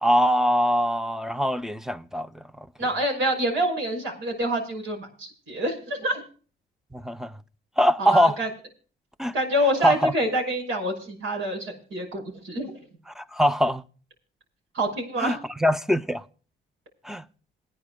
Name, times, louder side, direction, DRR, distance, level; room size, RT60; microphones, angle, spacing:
voice 1, 0.0-2.4 6.9-7.3 7.8-8.4 9.2-9.3 9.8-10.1 13.2-13.8 15.2-16.2 17.0-17.2, equal, ahead, 0.6 m, -22 dB
voice 2, 2.8-6.2 8.0-8.5 9.3-12.8 14.7-15.4, right 1 dB, 80° right, 5.9 m, -27 dB
28.0 x 9.9 x 2.2 m
cardioid pair, 90°, 20 cm